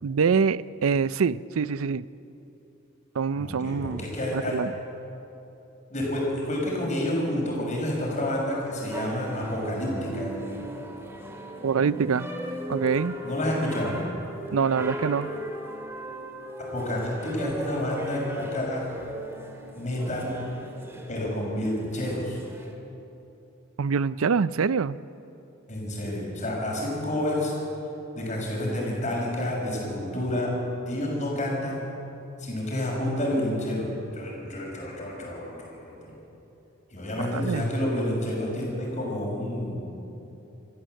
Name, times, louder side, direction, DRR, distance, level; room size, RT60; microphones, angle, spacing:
voice 1, 0.0-2.0 3.1-4.0 4.3-4.7 11.6-12.3 12.7-13.2 14.5-15.3 23.8-25.0 37.3-37.6, right 5 dB, 85° right, 18 dB, 0.5 m, -25 dB
voice 2, 3.4-4.6 5.9-10.3 13.2-14.0 16.7-18.9 19.7-20.4 21.1-22.4 25.7-27.5 28.1-30.5 30.9-31.8 32.4-33.9 34.1-36.2 36.9-39.9, left 1 dB, 35° left, -2 dB, 6.0 m, -29 dB
sound 1, 8.9-22.7, right 1 dB, 10° right, 2.0 m, -37 dB
26.0 x 14.0 x 7.8 m, 2.9 s
head